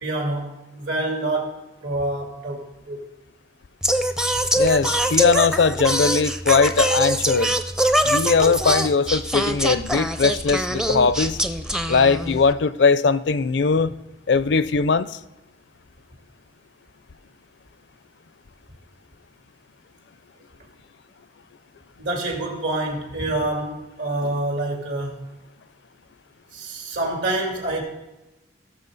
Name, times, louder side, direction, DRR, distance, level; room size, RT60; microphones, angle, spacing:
voice 1, 0.0-3.0 22.0-25.3 26.5-27.8, right 2 dB, 75° right, -1 dB, 3.1 m, -27 dB
Singing, 3.8-12.5, right 1 dB, 5° right, 0.5 m, -23 dB
voice 2, 4.5-7.5 8.0-11.4 11.9-13.9 14.3-15.2, left 4 dB, 65° left, 15 dB, 0.5 m, -20 dB
18.5 x 6.7 x 4.0 m, 1.0 s
head